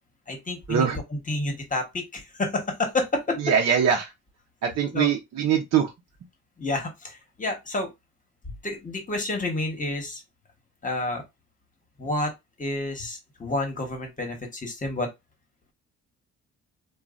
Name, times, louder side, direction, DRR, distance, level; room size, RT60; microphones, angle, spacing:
voice 1, 0.3-0.8 1.1-3.4 4.9-5.1 6.6-7.9 8.5-10.2 10.8-11.2 12.0-12.3 12.6-15.1, left 2 dB, 25° left, 1.2 m, -29 dB
voice 2, 3.4-4.1 4.6-5.9, right 8 dB, 60° right, 0.8 m, -22 dB
3.0 x 2.3 x 2.5 m
cardioid pair, 90°, 30 cm